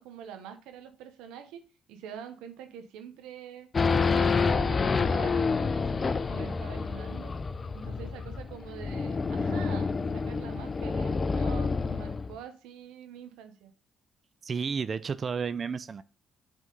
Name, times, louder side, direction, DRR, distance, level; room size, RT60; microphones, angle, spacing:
voice 1, 0.0-1.6 1.9-3.7 4.0-7.4 7.7-13.7, right 8 dB, 80° right, 0.9 m, -45 dB
Race car auto racing / Idling / Accelerating revving vroom, 3.7-12.4, left 4 dB, 40° left, 0.4 m, -28 dB
voice 2, 14.4-16.0, right 5 dB, 45° right, 0.4 m, -32 dB
5.2 x 3.6 x 5.3 m
supercardioid pair, 60°, 0 cm